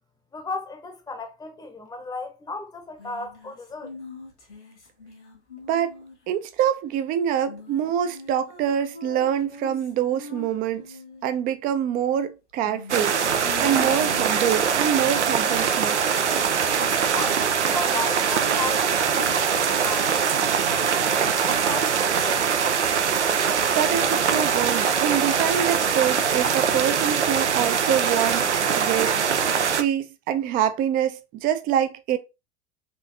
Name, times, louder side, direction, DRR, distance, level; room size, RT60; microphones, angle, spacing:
voice 1, 0.3-3.9 17.1-20.1 20.6-22.5, left 3 dB, 10° left, 0.7 m, -35 dB
sound 1, 3.0-6.3 7.5-11.2 12.6-15.7 17.0-18.0 18.3-21.3, left 3 dB, 80° left, 1.6 m, -43 dB
voice 2, 6.3-10.8 11.2-16.0 23.7-28.5 28.7-29.2 29.4-32.2, right 9 dB, 25° right, 0.4 m, -25 dB
sound 2, 12.9-29.8, right 7 dB, 85° right, 0.5 m, -22 dB
4.3 x 2.6 x 2.6 m
figure-of-eight pair, 85°, 34 cm